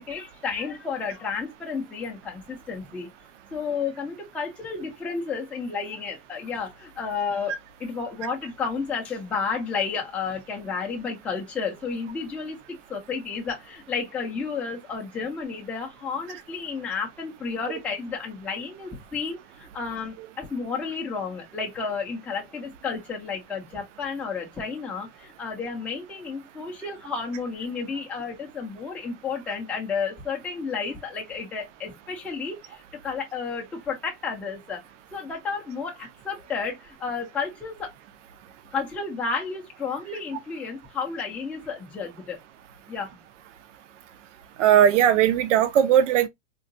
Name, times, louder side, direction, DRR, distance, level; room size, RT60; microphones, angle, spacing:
voice 1, 0.0-3.1 3.5-7.5 7.8-34.8 35.1-37.9 38.7-42.4 42.9-43.1, left 5 dB, 5° left, 0.4 m, -32 dB
voice 2, 44.6-46.3, right 10 dB, 80° right, 0.6 m, -18 dB
3.8 x 2.2 x 2.5 m
supercardioid pair, 155°, 36 cm